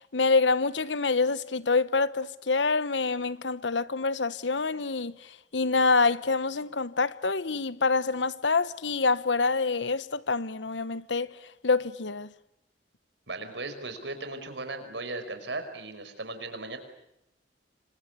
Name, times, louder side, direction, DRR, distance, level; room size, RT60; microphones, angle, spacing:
voice 1, 0.0-5.2 5.5-11.3 11.6-12.3, left 4 dB, 85° left, 1.1 m, -26 dB
voice 2, 13.3-16.8, right 2 dB, 80° right, 5.4 m, -37 dB
27.5 x 26.0 x 8.4 m
head